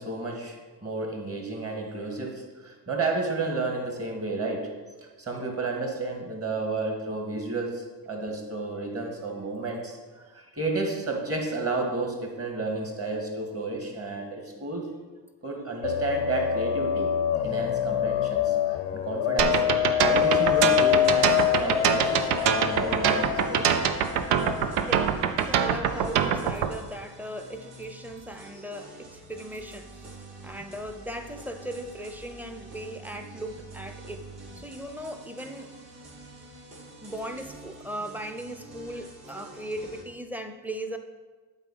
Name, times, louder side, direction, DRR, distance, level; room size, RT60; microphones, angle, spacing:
voice 1, 0.0-4.7 5.2-10.0 10.2-14.9 15.4-17.1 17.4-23.8, right 3 dB, 30° right, 2 dB, 1.8 m, -32 dB
sound 1, 15.8-25.1, left 11 dB, 85° left, 0.6 m, -26 dB
sound 2, 19.4-26.7, right 8 dB, 85° right, 0.6 m, -24 dB
sound 3, 20.1-40.0, right 2 dB, 50° right, 2.2 m, -47 dB
voice 2, 24.8-30.2 30.4-34.2 34.5-35.7 37.0-41.0, right 1 dB, 5° right, 6 dB, 0.7 m, -38 dB
8.2 x 3.9 x 5.5 m, 1.3 s
supercardioid pair, 65°, 49 cm